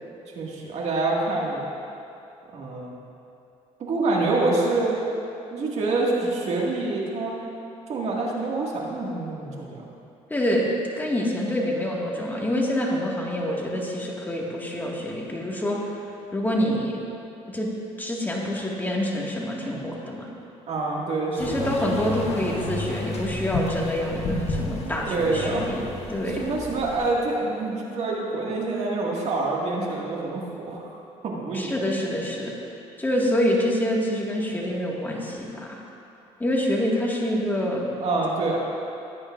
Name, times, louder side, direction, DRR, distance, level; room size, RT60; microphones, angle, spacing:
voice 1, 0.3-1.7 2.5-3.0 3.8-5.0 5.5-7.5 7.9-9.8 20.7-21.7 22.0-22.1 24.8-25.7 26.4-30.9 31.2-31.8 38.0-38.6, right 3 dB, 55° right, -3 dB, 2.2 m, -26 dB
voice 2, 10.3-10.7 11.0-15.9 16.3-17.0 17.5-17.7 18.0-20.3 21.4-25.8 26.1-26.4 31.5-32.5 33.0-35.8 36.4-37.9, left 1 dB, 15° left, -3 dB, 2.0 m, -26 dB
sound 1, 21.4-27.1, left 2 dB, 55° left, 1.5 m, -32 dB
17.0 x 9.5 x 2.6 m, 2.7 s
cardioid pair, 90°, 13 cm